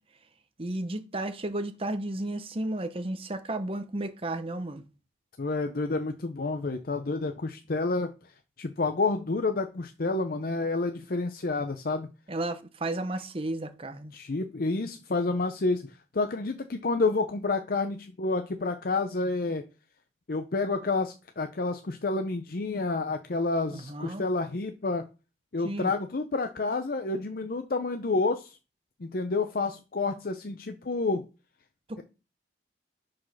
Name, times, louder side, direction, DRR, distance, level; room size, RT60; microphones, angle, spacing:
voice 1, 0.6-4.8 12.3-14.1 23.7-24.2 25.6-25.9, right 2 dB, 30° right, 0.9 m, -33 dB
voice 2, 5.4-8.1 8.6-12.1 14.1-15.9 16.1-19.6 20.3-25.0 25.5-28.6 29.0-31.2 32.0-32.1, left 3 dB, 55° left, 0.6 m, -29 dB
6.3 x 5.1 x 5.8 m
head